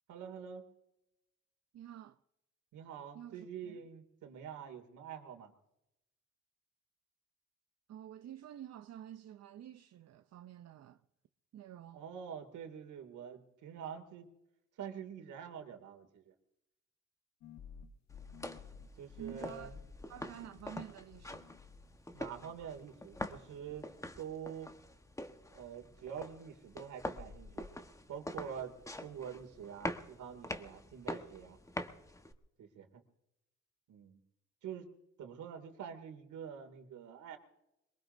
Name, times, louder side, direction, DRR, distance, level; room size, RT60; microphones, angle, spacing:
voice 1, 0.1-0.6 2.7-5.5 11.9-14.3 14.8-16.3 19.0-19.8 22.1-23.9 24.2-24.7 25.5-27.7 28.1-28.7 29.0-31.6 32.6-33.0 33.9-34.2 34.6-34.9 35.2-37.4, right 8 dB, 80° right, 2.6 m, -46 dB
voice 2, 1.7-2.2 3.1-3.8 7.9-11.0 11.5-12.0 19.2-19.8 20.1-21.5, right 11 dB, 60° right, 0.6 m, -49 dB
sound 1, 17.4-22.9 23.1-23.8, left 7 dB, 65° left, 1.3 m, -55 dB
sound 2, 18.1-32.3, left 1 dB, 10° left, 1.2 m, -45 dB
23.0 x 21.5 x 2.7 m
cardioid pair, 90°, 30 cm